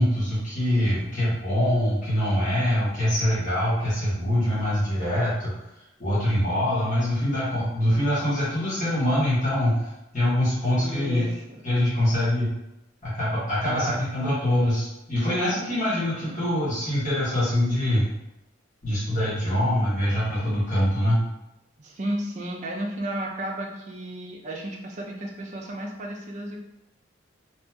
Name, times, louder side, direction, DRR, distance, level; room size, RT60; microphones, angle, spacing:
voice 1, 0.0-5.5 6.0-11.3 11.6-12.5 13.0-18.0 18.8-21.2, left 1 dB, 40° left, -11 dB, 1.2 m, -24 dB
voice 2, 10.8-11.6 13.6-14.0 16.0-16.5 21.8-26.6, right 1 dB, 35° right, -1 dB, 0.4 m, -33 dB
2.8 x 2.7 x 2.3 m, 0.89 s
head